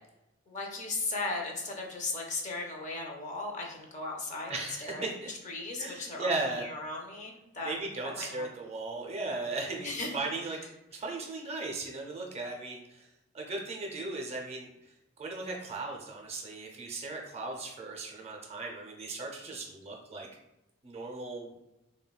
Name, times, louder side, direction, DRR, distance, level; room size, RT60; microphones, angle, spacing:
voice 1, 0.5-4.5 4.8-5.0 5.4-6.3 6.6-7.7 8.1-8.5 9.8-10.2, left 3 dB, 35° left, 0 dB, 0.5 m, -36 dB
voice 2, 4.5-5.3 5.8-6.7 7.6-10.6 10.9-13.1 13.3-20.3 20.8-21.6, right 3 dB, 30° right, 0 dB, 0.4 m, -37 dB
3.4 x 2.1 x 2.3 m, 0.93 s
head